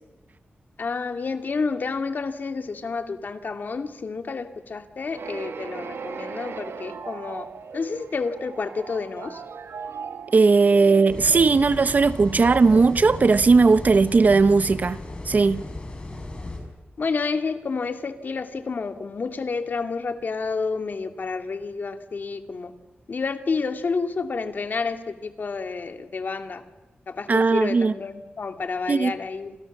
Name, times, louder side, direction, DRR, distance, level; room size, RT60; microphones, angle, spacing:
voice 1, 0.8-7.5 7.7-9.4 17.0-22.7 23.1-26.6 27.1-29.6, left 4 dB, 50° left, 2.2 m, -29 dB
sound 1, 5.1-13.9, right 5 dB, 80° right, 1.9 m, -38 dB
voice 2, 10.3-15.0 15.3-15.6 27.3-27.9 28.9-29.1, right 4 dB, 40° right, 0.9 m, -18 dB
sound 2, 11.1-16.6, left 2 dB, 25° left, 5.8 m, -35 dB
30.0 x 27.0 x 7.3 m
wide cardioid pair, 170°, 4 cm